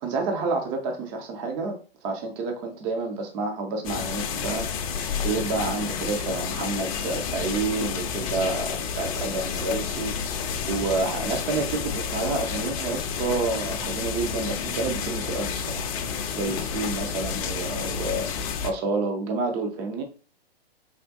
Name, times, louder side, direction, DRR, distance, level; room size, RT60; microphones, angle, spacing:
voice 1, 0.0-4.7 4.9-15.9 16.4-18.3 18.6-20.0, right 3 dB, 10° right, 3 dB, 0.3 m, -29 dB
sound 1, 3.8-18.7, left 6 dB, 35° left, 0.5 m, -30 dB
4.2 x 3.6 x 2.5 m, 0.37 s
figure-of-eight pair, 110°, 31 cm